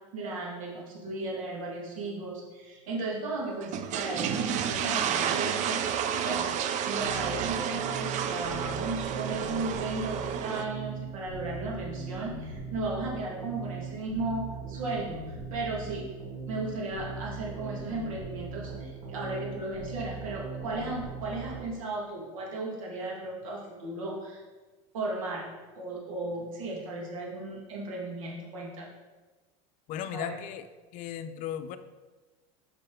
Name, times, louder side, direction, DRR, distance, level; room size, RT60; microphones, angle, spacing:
voice 1, 0.1-16.1 16.5-24.4 24.9-25.5 25.7-28.9 30.1-30.4, right 2 dB, 80° right, -2 dB, 2.1 m, -35 dB
sound 1, 3.6-10.6, right 8 dB, 45° right, 0.6 m, -31 dB
sound 2, 7.0-21.6, right 4 dB, 60° right, 1.5 m, -40 dB
voice 2, 29.9-30.7 30.9-31.8, left 9 dB, 50° left, 11 dB, 0.5 m, -36 dB
6.6 x 5.1 x 3.8 m, 1.3 s
hypercardioid pair, 95°, 17 cm